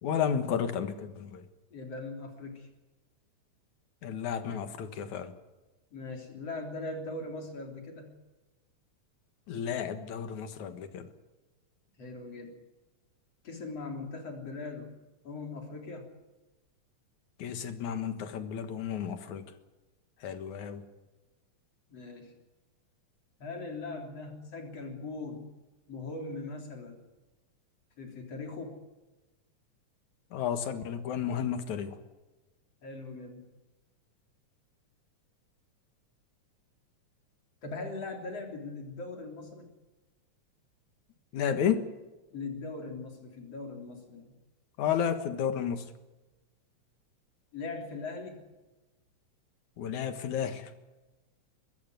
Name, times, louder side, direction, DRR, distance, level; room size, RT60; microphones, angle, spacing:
voice 1, 0.0-1.5 4.0-5.3 9.5-11.1 17.4-19.5 20.2-20.8 30.3-32.0 41.3-41.8 44.8-45.9 49.8-50.7, left 8 dB, 80° left, 10 dB, 3.0 m, -32 dB
voice 2, 1.7-2.7 5.9-8.2 12.0-12.6 13.4-14.9 15.2-16.1 21.9-22.3 23.4-25.5 25.9-27.0 28.0-28.8 32.8-33.5 37.6-39.7 42.3-44.3 47.5-48.4, left 3 dB, 55° left, 4 dB, 4.5 m, -40 dB
23.5 x 14.5 x 9.4 m, 1.1 s
omnidirectional pair, 3.3 m